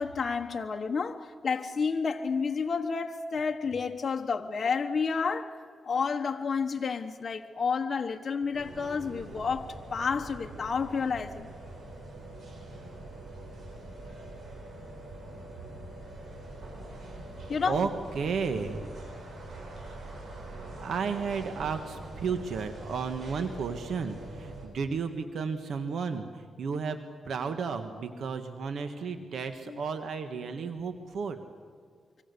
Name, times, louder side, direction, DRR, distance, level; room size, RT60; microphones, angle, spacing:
voice 1, 0.0-5.6 5.8-11.5 17.5-17.9 29.7-29.8, left 5 dB, 45° left, 1.3 m, -30 dB
sound 1, 8.5-24.7, right 2 dB, 65° right, 7.2 m, -44 dB
voice 2, 18.1-18.8 20.8-27.0 27.3-31.4, right 5 dB, 80° right, 1.6 m, -33 dB
25.0 x 25.0 x 6.9 m
cardioid pair, 95°, 0 cm